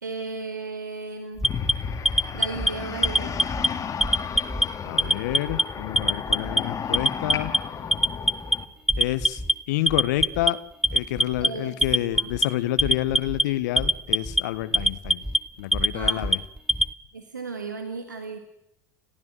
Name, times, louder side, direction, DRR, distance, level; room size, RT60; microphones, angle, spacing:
voice 1, 0.0-1.5 2.3-3.4 11.4-12.3 15.9-16.3 17.1-18.4, right 4 dB, 90° right, 6 dB, 1.9 m, -35 dB
sound 1, 1.4-8.7, left 7 dB, 35° left, 2.3 m, -33 dB
Alarm, 1.4-2.7 3.0-3.7 4.0-4.7 5.0-5.6 6.0-6.6 6.9-7.6 7.9-8.6 8.9-9.5 9.9-10.5 10.8-11.5 11.8-12.5 12.8-13.4 13.8-14.4 14.7-15.4 15.7-16.9, equal, 5° right, 1.0 m, -22 dB
voice 2, 4.8-7.5 9.0-9.4 9.7-10.6 10.9-15.2 15.6-16.4, left 15 dB, 70° left, 15 dB, 1.4 m, -28 dB
29.5 x 14.5 x 7.7 m, 0.83 s
figure-of-eight pair, 65°, 10 cm